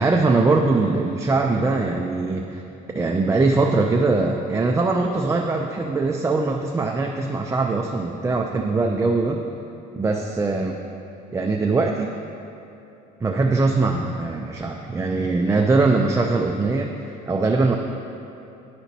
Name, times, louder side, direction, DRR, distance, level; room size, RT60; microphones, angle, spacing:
voice 1, 0.0-2.6 2.9-9.4 9.9-10.8 11.3-12.2 13.2-16.9 17.3-17.8, right 3 dB, 15° right, 1 dB, 0.4 m, -21 dB
11.0 x 4.4 x 4.1 m, 2.8 s
cardioid pair, 110°, 17 cm